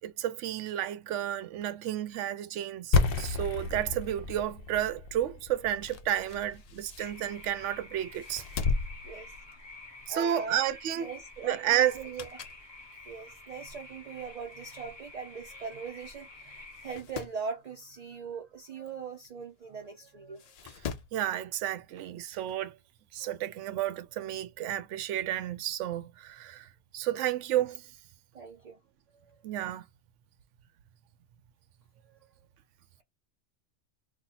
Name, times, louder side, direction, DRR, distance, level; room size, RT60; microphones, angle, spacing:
voice 1, 0.0-8.4 10.1-11.1 11.4-12.0 21.1-22.7 23.1-26.7 26.9-27.9 29.4-29.8, right 11 dB, 75° right, 0.9 m, -31 dB
sound 1, 2.9-8.7, left 4 dB, 55° left, 0.8 m, -32 dB
sound 2, 5.7-7.6 8.1-10.0 10.4-10.6 11.9-12.7 13.1-13.2 14.1-14.2 14.5-14.6 14.7-14.8 15.7-15.9 16.2-16.3 16.7-17.4 19.2-19.3 20.4-21.2 22.5-22.6, left 4 dB, 80° left, 0.3 m, -38 dB
sound 3, 7.0-16.9, left 2 dB, 25° left, 0.8 m, -49 dB
voice 2, 10.1-10.6 11.0-12.4 13.1-20.4 28.3-28.8, right 5 dB, 45° right, 0.6 m, -40 dB
2.7 x 2.4 x 4.0 m
omnidirectional pair, 1.3 m